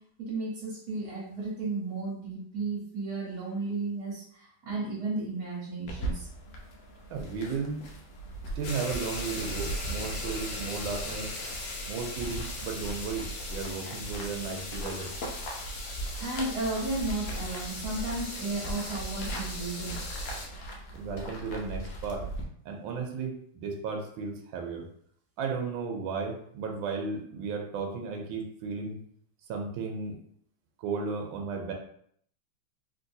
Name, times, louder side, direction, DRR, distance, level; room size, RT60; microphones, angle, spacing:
voice 1, 0.2-6.3 16.2-20.0, right 3 dB, 55° right, -6 dB, 1.5 m, -34 dB
sound 1, 5.9-22.4, right 2 dB, 80° left, 1.4 m, -39 dB
voice 2, 7.1-7.8 8.6-11.3 11.9-15.1 20.9-22.3 22.6-24.8 25.4-29.0 29.5-30.2 30.8-31.7, right 4 dB, 85° right, 2 dB, 1.4 m, -34 dB
sound 2, 8.6-20.5, left 2 dB, 65° left, 1.3 m, -39 dB
3.7 x 2.6 x 2.7 m, 0.65 s
omnidirectional pair, 2.1 m